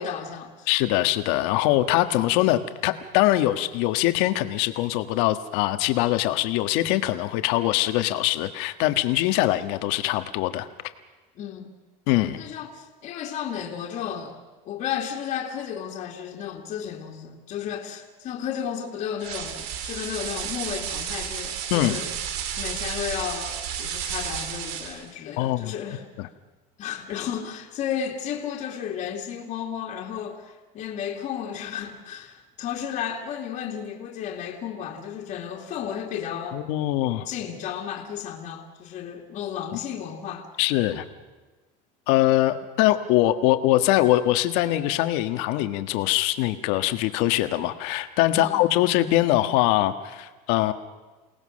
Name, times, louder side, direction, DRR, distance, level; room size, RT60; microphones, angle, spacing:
voice 1, 0.0-0.7 11.4-11.7 12.3-14.4 14.6-22.1 22.6-26.1 26.8-36.6 37.3-40.5 48.3-48.6, left 8 dB, 45° left, 2.4 m, -33 dB
voice 2, 0.7-10.7 12.1-12.4 21.7-22.0 25.4-25.7 26.2-26.3 36.5-37.3 40.6-41.0 42.1-50.7, left 15 dB, 70° left, 1.5 m, -23 dB
sound 1, 19.2-25.1, right 8 dB, 65° right, 2.3 m, -32 dB
29.0 x 18.5 x 6.5 m
cardioid pair, 155°, 18 cm